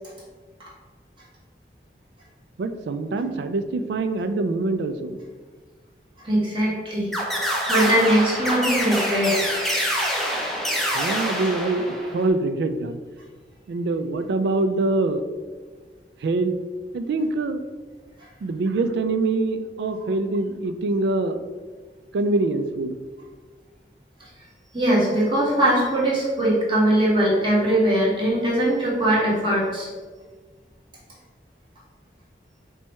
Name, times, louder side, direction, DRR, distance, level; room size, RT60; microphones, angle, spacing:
voice 1, 2.6-5.2 10.9-13.0 13.7-15.2 16.2-16.6 16.9-17.6 18.4-21.4 22.1-23.0, right 2 dB, 75° right, 10 dB, 0.3 m, -24 dB
voice 2, 6.2-7.1 7.4-9.6 19.9-20.0 24.7-29.9, right 1 dB, 30° right, -6 dB, 1.2 m, -21 dB
sound 1, 7.1-12.3, equal, ahead, 0.5 m, -26 dB
4.5 x 2.2 x 4.2 m, 1.4 s
head